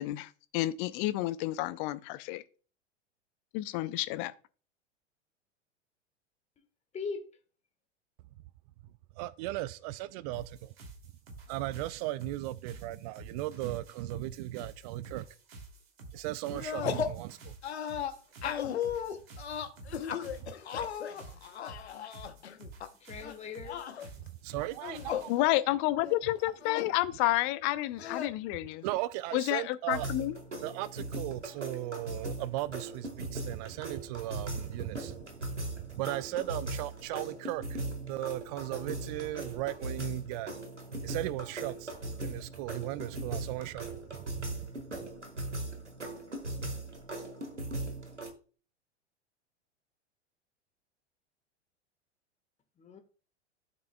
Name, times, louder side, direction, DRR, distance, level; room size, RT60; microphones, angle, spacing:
voice 1, 0.0-2.4 3.5-4.3 25.3-28.8 29.3-30.4, left 16 dB, 35° left, 0.6 m, -30 dB
voice 2, 6.9-7.3 23.0-23.9 52.8-53.0, left 5 dB, 20° left, 1.4 m, -39 dB
voice 3, 9.2-10.7 11.5-15.2 16.1-17.5 20.4-20.5 24.2-25.4 28.8-30.1 30.6-35.2 35.8-40.5 41.0-41.9 42.2-44.7 44.9-45.1, right 16 dB, 35° right, 0.4 m, -37 dB
sound 1, 10.3-25.4, right 2 dB, 60° right, 2.7 m, -51 dB
sound 2, 16.5-17.2 17.6-22.9 23.2-24.1 24.7-25.3 25.7-25.8 26.0-27.0 28.0-28.3, left 9 dB, 65° left, 0.9 m, -36 dB
sound 3, 29.9-48.3, right 2 dB, 85° right, 1.6 m, -39 dB
12.0 x 6.8 x 2.2 m
figure-of-eight pair, 90°, 35 cm